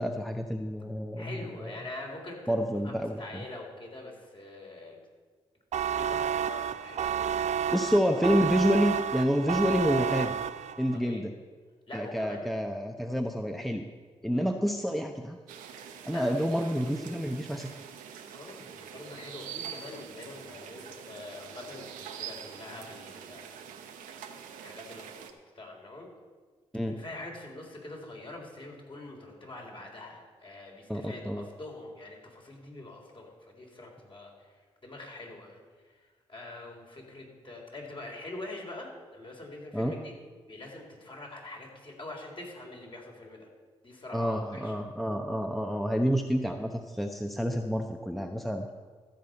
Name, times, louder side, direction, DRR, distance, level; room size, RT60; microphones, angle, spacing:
voice 1, 0.0-1.3 1.6-1.7 2.5-3.2 7.7-10.4 10.8-11.3 11.9-13.8 14.2-15.4 16.1-17.7 26.7-27.0 30.9-31.4 39.7-39.9 44.1-48.7, equal, ahead, 4 dB, 0.9 m, -28 dB
voice 2, 1.2-2.6 2.8-5.0 5.9-7.9 10.9-11.2 11.9-12.4 14.3-14.5 16.1-16.7 18.3-23.8 24.6-26.1 26.8-40.2 40.5-43.5 43.8-44.7, left 2 dB, 40° left, 0 dB, 4.0 m, -44 dB
sound 1, 5.7-11.0, right 8 dB, 60° right, 0.4 m, -30 dB
sound 2, 15.5-25.3, right 8 dB, 85° right, 0.9 m, -45 dB
13.5 x 5.1 x 8.0 m, 1.5 s
hypercardioid pair, 40°, 13 cm